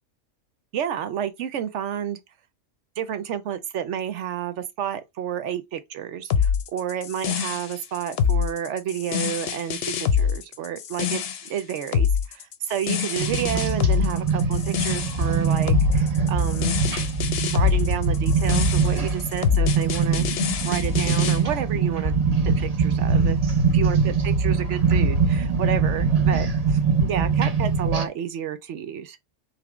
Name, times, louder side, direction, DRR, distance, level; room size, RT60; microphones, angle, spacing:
voice 1, 0.7-2.2 3.0-16.8 17.5-20.3 20.6-22.1 22.5-23.4 23.7-29.2, right 9 dB, 70° right, 1.0 m, -30 dB
sound 1, 6.3-21.4, left 7 dB, 55° left, 0.8 m, -25 dB
sound 2, 13.2-28.1, right 4 dB, 35° right, 0.8 m, -22 dB
3.5 x 3.1 x 4.8 m
omnidirectional pair, 1.3 m